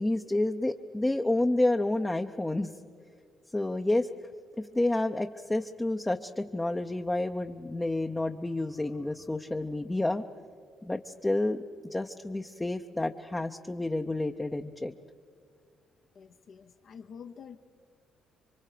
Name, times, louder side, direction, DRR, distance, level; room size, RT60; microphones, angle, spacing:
voice 1, 0.0-2.7 3.5-4.1 4.6-10.2 10.8-11.6 11.9-14.9, left 2 dB, 15° left, 4 dB, 0.7 m, -29 dB
voice 2, 16.1-17.6, left 7 dB, 60° left, 6 dB, 0.8 m, -47 dB
27.5 x 24.0 x 5.0 m, 2.1 s
cardioid pair, 90°, 0 cm